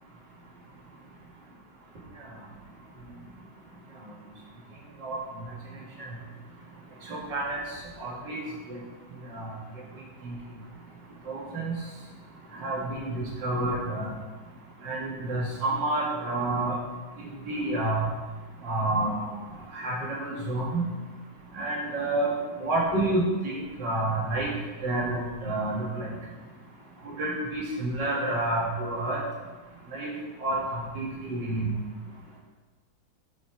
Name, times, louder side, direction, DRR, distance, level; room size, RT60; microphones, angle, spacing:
voice 1, 7.1-7.6 8.0-8.4 8.7-8.8 9.3-9.6 10.2-10.3 11.3-11.7 12.6-14.1 14.8-16.8 17.5-18.1 18.6-19.3 19.7-20.9 21.5-24.5 24.8-26.1 27.2-29.2 29.9-30.1 30.4-31.7, right 2 dB, 75° right, -4 dB, 2.7 m, -29 dB
9.3 x 5.3 x 4.6 m, 1.3 s
omnidirectional pair, 1.9 m